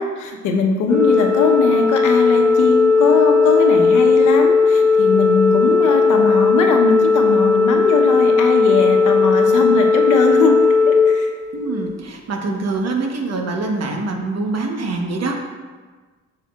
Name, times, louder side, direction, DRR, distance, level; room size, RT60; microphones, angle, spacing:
voice 1, 0.0-11.3, left 4 dB, 80° left, 2 dB, 1.0 m, -20 dB
Organ, 0.9-12.0, left 4 dB, 10° left, 1.7 m, -16 dB
voice 2, 11.5-15.4, right 3 dB, 55° right, 2 dB, 1.1 m, -24 dB
7.4 x 6.8 x 2.4 m, 1.4 s
cardioid pair, 90°, 30 cm